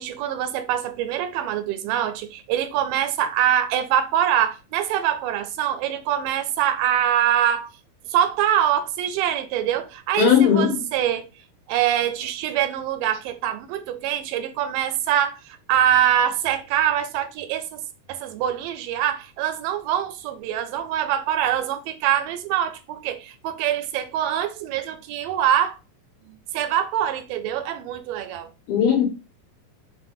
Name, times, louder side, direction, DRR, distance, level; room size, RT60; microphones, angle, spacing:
voice 1, 0.0-7.7 8.1-11.3 11.7-17.8 18.1-25.8 26.5-28.5, right 10 dB, 80° right, 2.0 m, -24 dB
voice 2, 10.2-10.8 28.7-29.0, left 8 dB, 90° left, 2.4 m, -17 dB
5.5 x 2.1 x 2.6 m
omnidirectional pair, 4.0 m